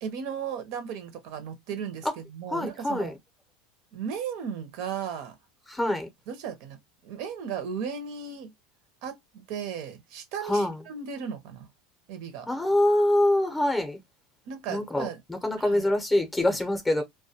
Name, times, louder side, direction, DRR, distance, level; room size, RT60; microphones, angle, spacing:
voice 1, 0.0-3.1 3.9-5.3 6.3-6.8 7.0-8.5 9.0-11.7 12.1-12.5 14.5-15.2 15.6-15.9, right 7 dB, 60° right, 0.7 m, -35 dB
voice 2, 2.5-3.1 5.7-6.1 10.5-10.8 12.5-14.0 14.7-17.0, left 1 dB, 10° left, 0.6 m, -25 dB
2.2 x 2.1 x 2.7 m
supercardioid pair, 130°, 0 cm